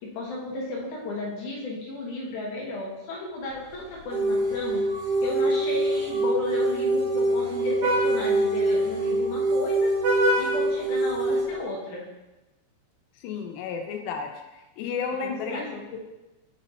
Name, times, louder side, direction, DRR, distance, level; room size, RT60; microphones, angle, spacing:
voice 1, 0.0-4.8 5.2-9.9 10.4-12.0 15.2-16.0, left 2 dB, 65° left, -3 dB, 2.1 m, -34 dB
Vehicle horn car horn honking, 3.5-11.6, right 1 dB, 85° right, 3.4 m, -33 dB
sound 1, 4.1-11.4, right 1 dB, 70° right, 1.4 m, -25 dB
voice 2, 13.2-14.3 14.8-15.7, left 6 dB, 90° left, 4 dB, 2.8 m, -32 dB
7.0 x 4.1 x 4.2 m, 1.0 s
omnidirectional pair, 4.8 m